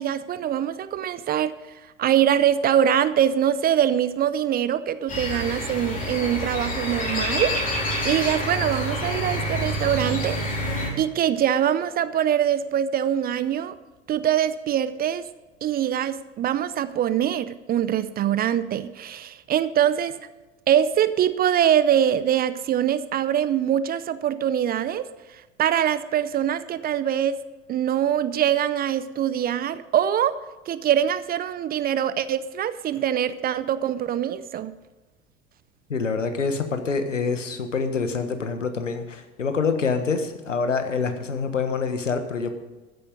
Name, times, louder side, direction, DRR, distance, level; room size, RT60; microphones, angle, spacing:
voice 1, 0.0-1.5 2.0-10.4 11.0-13.7 14.1-15.3 15.6-20.2 20.7-25.0 25.6-27.4 27.7-30.4 30.7-34.7, right 10 dB, 25° right, 15 dB, 0.6 m, -23 dB
sound 1, 5.1-10.9, equal, 20° left, 4.3 m, -27 dB
voice 2, 35.9-42.5, left 5 dB, 80° left, 8 dB, 1.5 m, -26 dB
14.0 x 10.0 x 5.2 m, 1.2 s
figure-of-eight pair, 80°, 37 cm